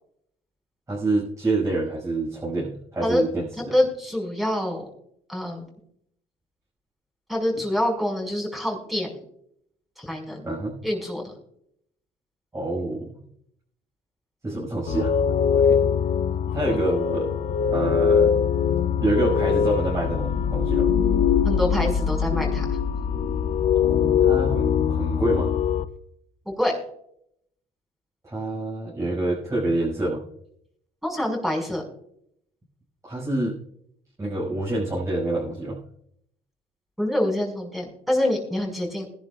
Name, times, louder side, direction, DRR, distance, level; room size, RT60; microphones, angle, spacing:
voice 1, 0.9-3.7 7.5-7.6 10.3-10.8 12.5-13.1 14.4-15.1 15.5-15.8 16.5-17.3 17.7-18.3 19.0-20.9 23.7-25.5 28.2-30.2 33.0-33.6 34.2-35.8, right 2 dB, 20° right, -7 dB, 6.1 m, -27 dB
voice 2, 3.6-4.9 5.3-5.7 7.3-9.1 10.0-10.5 10.8-11.3 21.4-22.8 26.5-26.8 31.0-31.8 37.0-39.1, left 1 dB, ahead, 0 dB, 5.6 m, -26 dB
sound 1, 14.9-25.8, left 7 dB, 50° left, 0.7 m, -22 dB
21.0 x 11.5 x 2.5 m, 0.72 s
cardioid pair, 110°, 17 cm